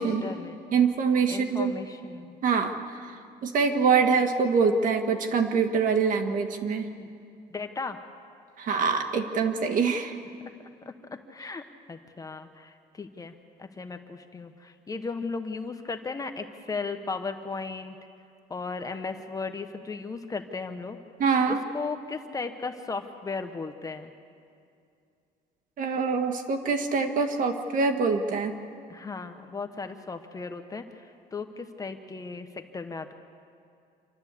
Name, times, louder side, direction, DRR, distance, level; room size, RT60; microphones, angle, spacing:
voice 1, 0.0-0.6 1.3-2.4 7.0-7.1 7.5-8.0 10.8-11.6 11.9-13.3 13.6-18.0 18.5-21.0 21.5-24.1 28.9-33.1, left 4 dB, 20° left, 6 dB, 1.1 m, -36 dB
voice 2, 0.7-1.7 2.4-2.8 3.4-6.9 8.6-10.2 21.2-21.6 25.8-28.5, right 5 dB, 50° right, 5 dB, 1.8 m, -24 dB
27.0 x 12.5 x 8.4 m, 2.4 s
cardioid pair, 130°, 17 cm